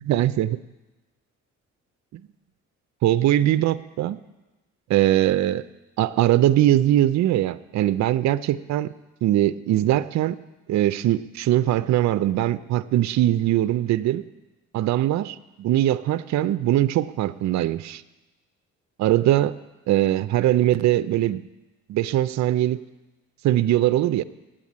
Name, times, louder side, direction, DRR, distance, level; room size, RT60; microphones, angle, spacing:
voice 1, 0.1-0.6 2.1-2.2 3.0-4.2 4.9-5.6 6.0-8.9 9.2-10.4 10.7-14.2 14.7-18.0 19.0-19.5 19.9-21.4 21.9-22.8 23.4-24.2, right 13 dB, 65° right, 14 dB, 0.5 m, -21 dB
8.9 x 8.7 x 8.5 m, 1.1 s
cardioid pair, 90°, 30 cm